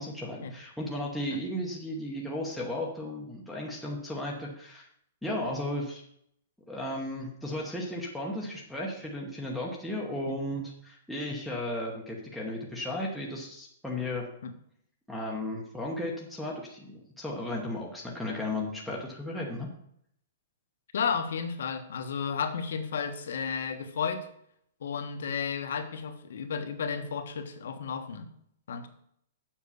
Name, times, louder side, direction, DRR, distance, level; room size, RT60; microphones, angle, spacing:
voice 1, 0.0-4.9 5.2-6.0 6.7-14.3 15.1-19.7, left 1 dB, ahead, -5 dB, 0.9 m, -35 dB
voice 2, 20.9-24.3 24.8-28.3 28.7-28.9, left 6 dB, 60° left, 7 dB, 1.2 m, -33 dB
7.4 x 5.5 x 7.0 m, 0.70 s
hypercardioid pair, 180°, 0 cm